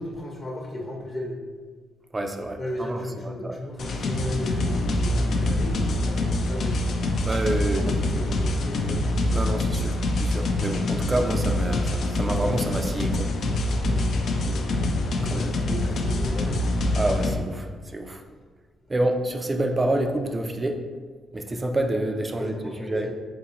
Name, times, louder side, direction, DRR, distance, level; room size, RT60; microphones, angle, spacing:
voice 1, 0.0-1.4 2.6-6.7 7.6-9.0 13.8-16.7 22.3-23.1, left 1 dB, 35° left, -1 dB, 0.8 m, -35 dB
voice 2, 2.1-3.6 7.2-7.9 9.3-13.3 15.3-15.5 16.9-18.2 18.9-20.8 21.3-23.1, right 1 dB, 20° right, 5 dB, 0.4 m, -28 dB
sound 1, 3.8-17.3, left 1 dB, 60° left, 0.5 m, -25 dB
3.8 x 3.7 x 2.9 m, 1.5 s
cardioid pair, 90°, 0 cm